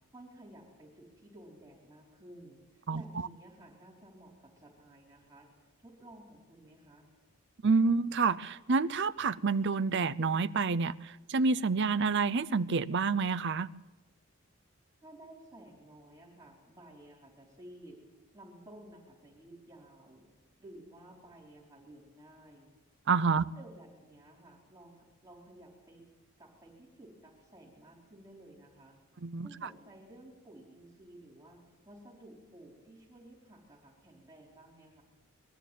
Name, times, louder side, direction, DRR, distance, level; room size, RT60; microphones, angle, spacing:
voice 1, 0.1-7.1 15.0-18.0 18.3-20.3 20.6-22.7 23.4-26.0 26.4-29.0 29.4-35.0, right 1 dB, 15° right, 4.1 m, -54 dB
voice 2, 7.6-13.7 23.1-23.4 29.2-29.5, right 4 dB, 50° right, 0.6 m, -28 dB
22.0 x 13.5 x 9.2 m
head